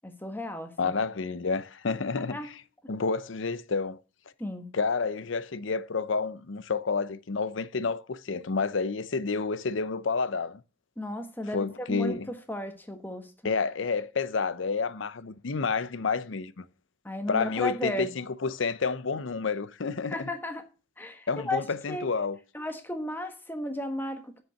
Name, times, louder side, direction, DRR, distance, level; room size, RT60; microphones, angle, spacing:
voice 1, 0.0-0.9 2.2-2.5 4.4-4.7 11.0-13.3 17.0-18.1 20.0-20.7 21.0-21.6 21.9-22.1 22.5-24.4, left 1 dB, 10° left, 1.3 m, -34 dB
voice 2, 0.8-2.4 2.9-4.0 4.7-10.6 11.5-12.3 13.4-16.6 17.3-20.3 21.3-22.4, left 4 dB, 75° left, 0.7 m, -29 dB
7.2 x 6.7 x 6.3 m
head